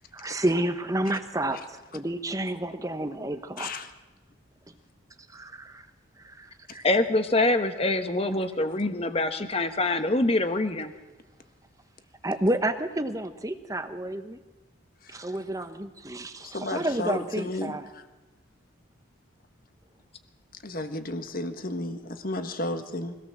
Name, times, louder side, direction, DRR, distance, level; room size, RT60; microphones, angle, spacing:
voice 1, 0.1-3.7 5.3-5.9 6.2-6.9 12.2-14.4 15.1-17.8, right 1 dB, 15° right, 9 dB, 1.2 m, -30 dB
voice 2, 3.6-3.9 6.7-6.8 15.0-15.4 16.4-18.0 20.6-23.1, left 2 dB, 45° left, 8 dB, 1.6 m, -33 dB
voice 3, 6.8-10.9, left 2 dB, 30° left, 9 dB, 1.3 m, -25 dB
24.0 x 17.5 x 7.5 m, 1.1 s
head